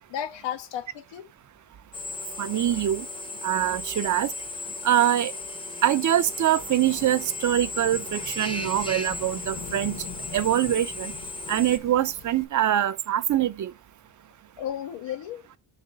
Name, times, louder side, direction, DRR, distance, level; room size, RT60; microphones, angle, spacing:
voice 1, 0.1-1.3 14.6-15.5, left 10 dB, 75° left, 0.8 m, -33 dB
Drill, 1.9-11.8, left 2 dB, 10° left, 0.6 m, -36 dB
voice 2, 2.4-3.1 3.4-4.3 4.8-5.3 5.8-10.1 10.3-11.1 11.5-13.7, right 12 dB, 45° right, 0.5 m, -24 dB
Thunderstorm / Rain, 4.7-12.4, left 5 dB, 45° left, 1.0 m, -44 dB
5.3 x 5.0 x 3.8 m
cardioid pair, 140°, 44 cm